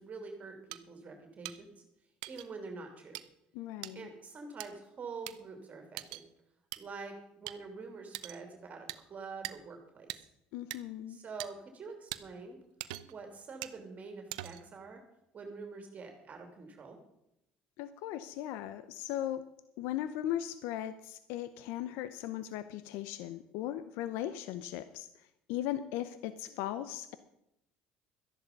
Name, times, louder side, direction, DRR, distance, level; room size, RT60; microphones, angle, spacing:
voice 1, 0.0-1.7 2.3-3.2 3.9-6.2 6.8-10.3 11.1-12.6 13.0-15.0 15.3-17.0, right 4 dB, 40° right, 4 dB, 2.9 m, -46 dB
sound 1, 0.7-0.8 1.4-1.6 2.2-2.5 3.1-3.2 3.8-3.9 4.6-4.7 5.3-5.4 6.0-6.2 6.7-6.8 7.5-7.6 8.1-8.4 8.9-9.0 9.4-9.6 10.1-10.2 10.7-10.8 11.4-11.5 12.1-12.2 12.8-13.2 13.6-13.8 14.3-14.7, right 17 dB, 85° right, 0.6 m, -41 dB
voice 2, 3.5-4.1 10.5-11.2 17.8-19.4 19.8-25.1 25.5-27.2, left 12 dB, 75° left, 13 dB, 0.7 m, -38 dB
13.0 x 10.5 x 5.3 m, 0.82 s
supercardioid pair, 75°, 4 cm